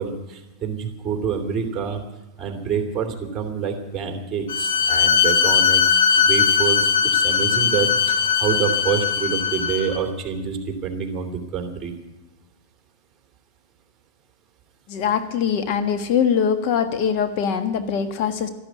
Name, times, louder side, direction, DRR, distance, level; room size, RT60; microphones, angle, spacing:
voice 1, 0.0-2.0 2.4-5.8 6.2-11.9, right 7 dB, 25° right, 4 dB, 2.9 m, -27 dB
Bowed string instrument, 4.5-10.0, left 6 dB, 80° left, 1.8 m, -19 dB
voice 2, 14.9-18.5, left 7 dB, 50° left, 9 dB, 1.4 m, -22 dB
13.0 x 12.0 x 9.3 m, 1.0 s
supercardioid pair, 130°, 0 cm